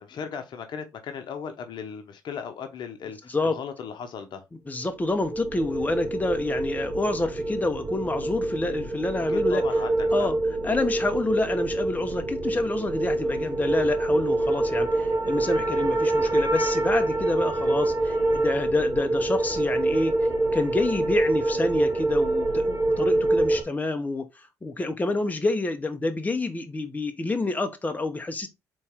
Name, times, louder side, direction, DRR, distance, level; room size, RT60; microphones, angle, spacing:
voice 1, 0.0-4.4 9.5-10.3, left 6 dB, 60° left, 0.9 m, -37 dB
voice 2, 4.7-9.6 10.1-10.4 10.6-20.2 20.5-24.3 24.6-28.5, left 2 dB, 20° left, 0.9 m, -28 dB
sound 1, 5.0-23.6, right 2 dB, 45° right, 1.9 m, -25 dB
4.1 x 3.1 x 3.6 m
hypercardioid pair, 55°, 9 cm